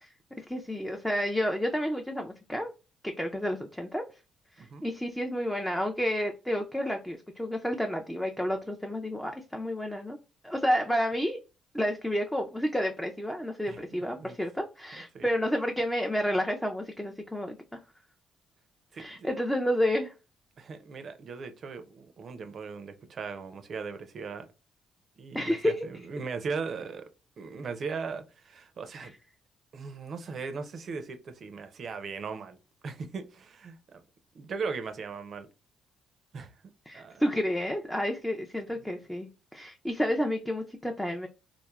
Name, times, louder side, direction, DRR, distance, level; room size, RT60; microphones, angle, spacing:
voice 1, 0.4-2.7 3.0-4.0 4.5-10.2 10.4-11.4 11.7-17.6 18.9-20.1 25.3-25.8 29.0-29.1 36.9-41.3, equal, 5° left, 0.4 m, -30 dB
voice 2, 13.7-14.4 15.1-15.3 18.9-19.3 20.6-24.5 25.2-27.1 27.4-29.1 29.7-32.6 32.8-34.0 34.3-35.5 36.3-36.5 36.9-37.2 38.8-38.9, right 5 dB, 55° right, 0.5 m, -38 dB
3.1 x 2.0 x 2.3 m
supercardioid pair, 65°, 0 cm